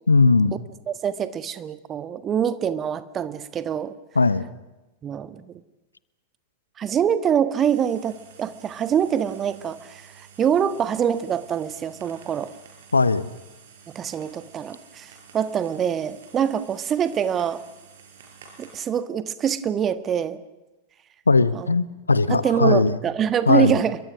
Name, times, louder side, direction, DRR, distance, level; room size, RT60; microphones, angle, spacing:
voice 1, 0.1-0.5 4.1-4.4 12.9-13.3 21.3-23.0 23.5-23.8, left 3 dB, 80° left, 16 dB, 1.1 m, -18 dB
voice 2, 0.9-3.9 5.0-5.6 6.8-12.5 13.9-17.6 18.6-20.4 21.5-21.7 22.3-24.0, right 8 dB, 25° right, 13 dB, 1.4 m, -25 dB
sound 1, 7.6-18.8, right 6 dB, 60° right, 6.2 m, -50 dB
29.0 x 23.0 x 6.3 m, 1.1 s
figure-of-eight pair, 90°, 0 cm